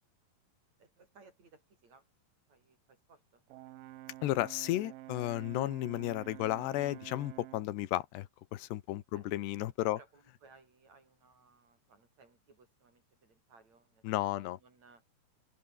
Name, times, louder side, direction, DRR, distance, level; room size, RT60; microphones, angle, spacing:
voice 1, 0.8-2.1 2.5-3.4 8.9-9.4 9.9-14.1 14.4-15.0, right 4 dB, 40° right, 8.5 m, -62 dB
Brass instrument, 3.5-7.7, right 16 dB, 75° right, 2.2 m, -49 dB
voice 2, 4.2-8.3 8.5-10.0 14.0-14.6, left 15 dB, 80° left, 3.3 m, -33 dB
open air
omnidirectional pair, 4.8 m